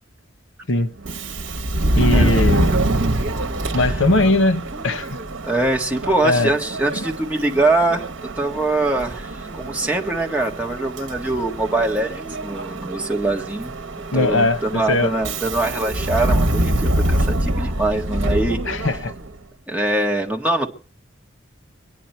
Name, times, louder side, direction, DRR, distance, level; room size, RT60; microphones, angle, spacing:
Subway metro underground, 1.0-19.3, right 1 dB, 80° right, 1.1 m, -25 dB
voice 1, 1.9-2.7 3.7-5.2 6.2-6.5 14.1-14.6 14.9-15.1 18.7-19.1, left 2 dB, 90° left, 1.0 m, -19 dB
voice 2, 5.4-8.1 8.4-13.8 14.1-18.9 19.7-20.7, right 2 dB, 5° right, 1.7 m, -23 dB
23.5 x 10.0 x 4.4 m
head